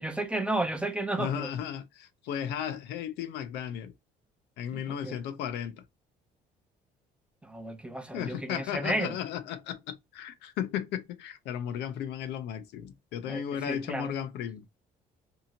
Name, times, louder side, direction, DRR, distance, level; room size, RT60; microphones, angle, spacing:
voice 1, 0.0-1.5 4.7-5.2 7.4-9.2 13.3-14.2, right 1 dB, 5° right, 0.5 m, -33 dB
voice 2, 1.2-3.9 4.6-5.8 8.1-14.6, left 9 dB, 80° left, 0.6 m, -35 dB
2.7 x 2.5 x 2.8 m
cardioid pair, 110°, 17 cm